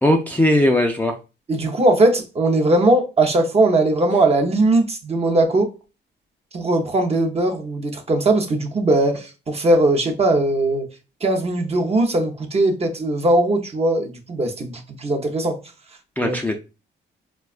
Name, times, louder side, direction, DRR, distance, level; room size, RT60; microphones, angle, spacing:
voice 1, 0.0-1.1 16.2-16.6, left 1 dB, 10° left, 0.3 m, -18 dB
voice 2, 1.5-5.7 6.5-10.9 11.2-15.6 16.2-16.4, right 2 dB, 30° right, 0.6 m, -19 dB
4.1 x 2.2 x 2.4 m
cardioid pair, 90°, 20 cm